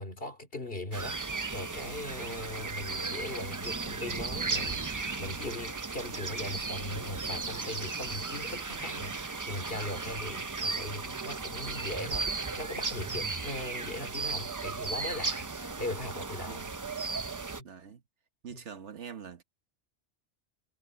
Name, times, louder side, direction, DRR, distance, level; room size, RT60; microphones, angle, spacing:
voice 1, 0.0-16.6 17.6-17.7 18.5-18.6, left 1 dB, 50° left, 3.5 m, -39 dB
sound 1, 0.9-17.6, right 4 dB, 35° right, 0.3 m, -35 dB
voice 2, 17.6-18.0 18.4-19.4, right 7 dB, 75° right, 1.5 m, -44 dB
omnidirectional pair, 1.2 m